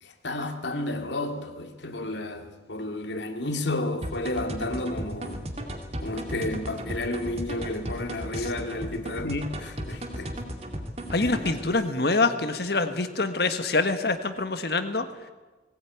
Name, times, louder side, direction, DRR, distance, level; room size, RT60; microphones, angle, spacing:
voice 1, 0.0-5.4 6.0-10.3 11.2-11.4, left 2 dB, 75° left, 6 dB, 2.4 m, -32 dB
sound 1, 4.0-11.7, equal, 35° right, 2.4 m, -35 dB
voice 2, 11.1-15.0, left 3 dB, 60° left, 9 dB, 1.5 m, -25 dB
19.5 x 17.0 x 9.3 m, 1.2 s
head